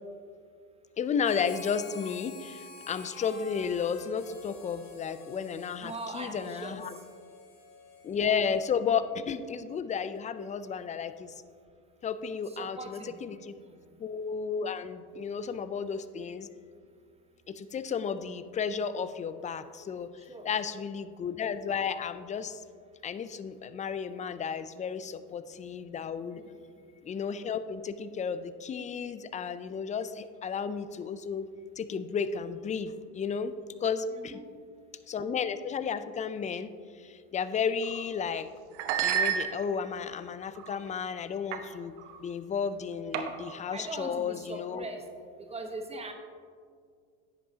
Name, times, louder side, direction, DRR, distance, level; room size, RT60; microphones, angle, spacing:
voice 1, 1.0-6.9 8.0-11.3 12.0-13.5 14.0-16.5 17.5-20.1 20.5-22.6 23.0-26.4 27.0-31.5 31.8-33.5 33.8-34.4 35.1-36.7 37.0-38.5 39.0-41.9 42.2-44.8, left 6 dB, 20° left, 13 dB, 0.4 m, -33 dB
Harmonica, 1.2-9.0, left 4 dB, 65° left, 2.2 m, -49 dB
voice 2, 5.8-6.8 12.5-13.2 13.6-13.8 20.3-20.5 26.3-26.6 34.1-34.5 43.7-45.1 45.4-46.1, right 2 dB, 15° right, 4 dB, 1.1 m, -41 dB
sound 1, 37.8-38.1 38.7-40.0 40.6-40.9 41.5-41.7 42.0-42.2 43.1-43.6, right 8 dB, 75° right, 0.9 m, -31 dB
10.5 x 8.6 x 2.8 m, 2.1 s
hypercardioid pair, 85°, 35 cm